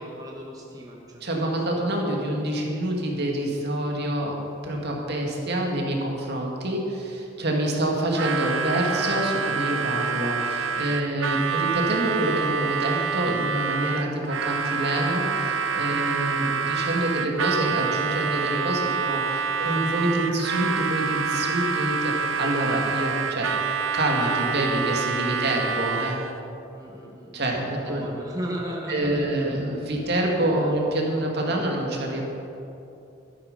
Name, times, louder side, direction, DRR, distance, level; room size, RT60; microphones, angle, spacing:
voice 1, 0.0-1.5 7.4-7.6 10.9-11.2 15.9-16.1 22.4-22.9 25.2-25.7 26.7-27.5 27.7-29.3 30.0-30.1 30.5-30.8 31.4-31.7, right 1 dB, 20° right, -2 dB, 1.2 m, -37 dB
voice 2, 1.2-4.4 4.6-23.5 23.9-26.2 27.3-28.0 28.9-32.2, right 1 dB, 60° right, 0 dB, 2.1 m, -26 dB
Harmonica, 8.1-26.4, right 6 dB, 85° right, 0.7 m, -27 dB
12.5 x 11.0 x 5.3 m, 2.9 s
head